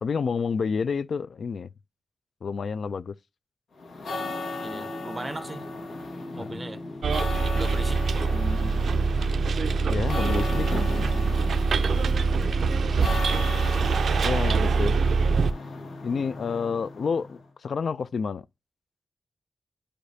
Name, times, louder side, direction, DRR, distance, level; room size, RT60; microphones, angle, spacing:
voice 1, 0.0-1.7 2.4-3.1 6.3-6.5 9.9-10.8 14.2-15.0 16.0-18.5, left 5 dB, 60° left, 0.3 m, -29 dB
sound 1, 3.8-17.4, left 2 dB, 90° left, 1.5 m, -35 dB
voice 2, 4.6-5.7 6.3-6.8 7.5-8.4 11.9-12.1, right 2 dB, 20° right, 0.5 m, -38 dB
Bus, 7.0-15.5, right 4 dB, 70° right, 0.4 m, -24 dB
10.0 x 5.0 x 2.7 m
wide cardioid pair, 150°, 0 cm